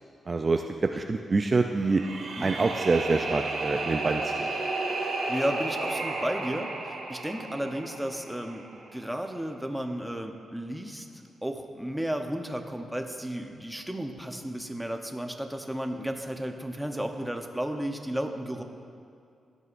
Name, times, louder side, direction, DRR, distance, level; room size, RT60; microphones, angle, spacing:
voice 1, 0.3-2.0 2.4-4.5, right 3 dB, 30° right, 4 dB, 0.4 m, -26 dB
sound 1, 1.8-8.9, right 3 dB, 80° right, 2.0 m, -33 dB
voice 2, 5.3-8.6 8.9-18.6, right 1 dB, 5° right, 4 dB, 0.8 m, -33 dB
17.0 x 11.0 x 2.6 m, 2.4 s
wide cardioid pair, 120°, 0 cm